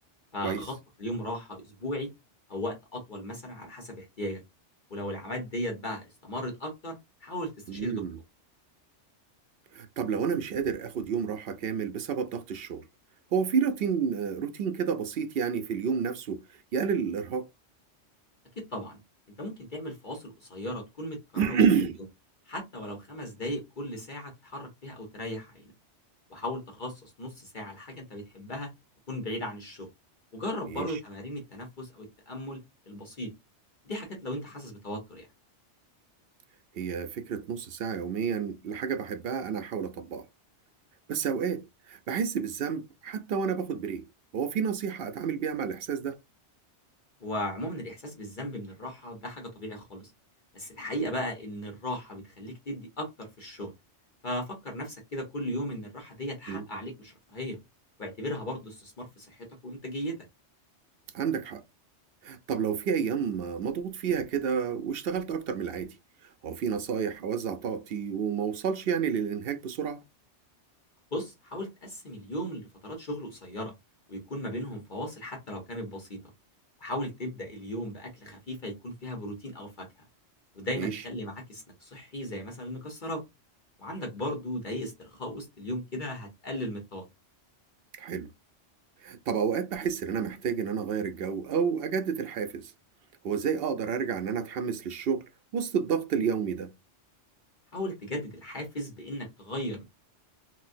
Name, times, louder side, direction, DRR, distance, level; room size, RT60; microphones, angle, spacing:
voice 1, 0.3-2.1 2.5-4.4 4.9-8.0 18.7-19.0 19.4-21.6 22.5-25.7 26.3-28.7 29.1-29.9 30.3-32.6 32.9-33.3 33.8-35.3 47.2-50.1 50.5-53.7 54.2-57.6 58.0-60.2 71.1-73.7 74.1-76.2 76.8-79.9 80.5-83.2 83.8-87.1 97.7-99.8, left 1 dB, 45° left, 1.0 m, -36 dB
voice 2, 7.7-8.2 9.7-12.8 13.3-16.4 16.7-17.5 21.3-22.0 30.7-30.9 36.7-40.3 41.1-44.0 44.3-46.2 56.5-56.6 61.1-61.6 62.2-65.9 66.4-70.0 80.7-81.0 88.0-88.3 89.0-92.7 93.2-96.7, right 6 dB, 65° right, 0.7 m, -30 dB
3.9 x 2.2 x 2.5 m
omnidirectional pair, 1.2 m